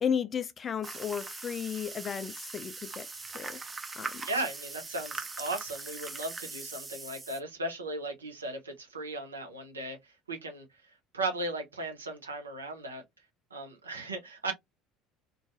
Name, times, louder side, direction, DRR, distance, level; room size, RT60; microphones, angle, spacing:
voice 1, 0.0-3.1 3.3-3.6 4.0-4.3, left 7 dB, 30° left, 0.3 m, -34 dB
sound 1, 0.8-7.4, right 4 dB, 20° right, 0.5 m, -41 dB
voice 2, 4.3-10.0 10.3-10.6 11.1-13.0 13.5-14.5, right 2 dB, 80° right, 0.6 m, -36 dB
2.5 x 2.2 x 2.4 m
figure-of-eight pair, 65°, 0 cm